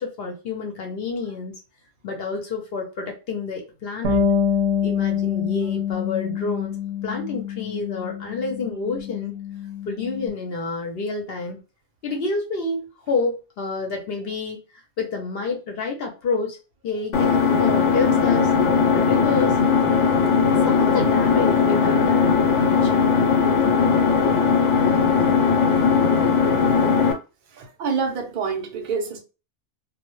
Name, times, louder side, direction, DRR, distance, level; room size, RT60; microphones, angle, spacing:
voice 1, 0.0-1.6 2.0-4.3 4.8-9.3 9.9-11.6 12.0-14.6 15.0-16.6 16.8-18.5 18.9-19.6 20.5-23.1, left 4 dB, 60° left, 0.8 m, -29 dB
Bass guitar, 4.0-10.3, left 7 dB, 80° right, 0.9 m, -26 dB
Engine, 17.1-27.1, left 6 dB, 90° left, 1.0 m, -18 dB
voice 2, 27.5-29.2, right 5 dB, 55° right, 0.7 m, -27 dB
2.1 x 2.0 x 2.9 m
omnidirectional pair, 1.2 m